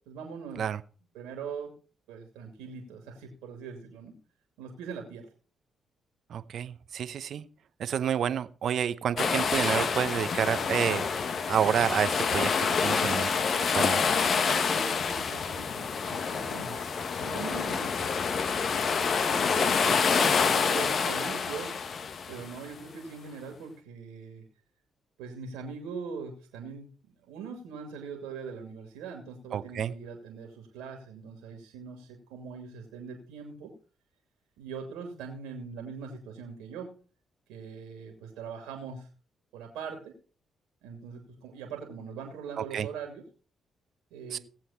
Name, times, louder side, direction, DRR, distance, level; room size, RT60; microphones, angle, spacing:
voice 1, 0.1-0.6 1.1-1.7 2.1-4.2 4.6-5.3 14.6-18.0 19.1-21.7 22.3-24.5 25.2-33.7 34.6-36.9 37.5-39.1 39.5-40.1 40.8-43.2 44.1-44.4, right 5 dB, 85° right, 2 dB, 2.6 m, -42 dB
voice 2, 6.3-7.5 7.8-11.1 11.5-12.5 12.8-13.3 13.7-14.0 29.5-29.9 42.7-42.9 44.3-44.4, right 8 dB, 65° right, 13 dB, 0.8 m, -29 dB
sound 1, 9.2-22.6, left 5 dB, 60° left, 1.2 m, -27 dB
17.5 x 7.7 x 4.3 m, 0.38 s
hypercardioid pair, 50°, 0 cm